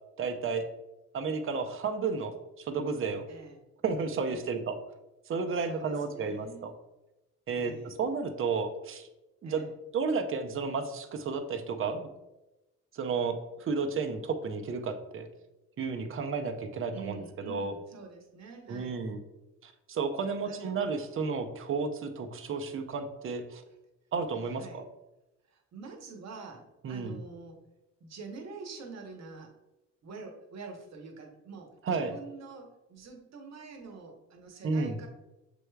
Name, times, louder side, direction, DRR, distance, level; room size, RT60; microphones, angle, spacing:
voice 1, 0.2-0.7 1.1-2.3 2.6-3.3 3.8-4.8 5.3-6.7 7.5-9.1 9.4-9.7 9.9-12.1 12.9-15.3 15.8-17.7 18.7-19.2 19.6-23.6 24.1-24.8 26.8-27.2 31.8-32.1 34.6-35.0, right 4 dB, 45° right, 7 dB, 0.6 m, -32 dB
voice 2, 3.3-3.6 4.3-4.5 5.5-6.7 7.5-7.9 9.4-9.7 16.9-19.0 20.4-20.8 24.6-24.8 25.5-27.6 28.0-29.5 30.0-35.1, right 4 dB, 60° right, 2 dB, 1.0 m, -46 dB
6.8 x 3.2 x 2.3 m, 0.99 s
cardioid pair, 90°, 30 cm